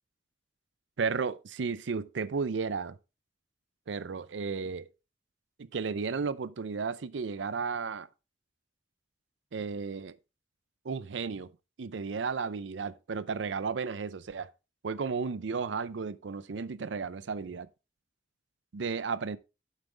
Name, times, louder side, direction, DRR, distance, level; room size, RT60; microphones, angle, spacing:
voice 1, 1.0-3.0 3.9-4.9 5.6-8.1 9.5-10.2 10.8-11.5 11.8-14.5 14.8-17.7 18.7-19.4, right 5 dB, 90° right, 0.5 m, -33 dB
9.1 x 7.3 x 3.3 m
head